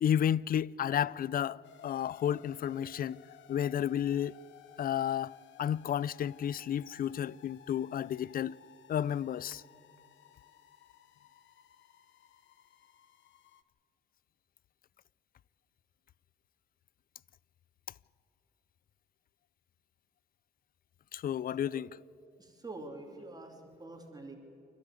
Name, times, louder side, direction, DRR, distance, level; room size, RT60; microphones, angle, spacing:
voice 1, 0.0-3.2 3.5-4.3 4.8-8.6 8.9-9.6 21.1-21.9, left 10 dB, 45° left, 0.4 m, -32 dB
sound 1, 1.6-13.6, left 9 dB, 70° left, 1.0 m, -58 dB
voice 2, 22.4-24.4, right 2 dB, 20° right, 2.9 m, -46 dB
28.5 x 12.5 x 8.2 m
cardioid pair, 90°, 20 cm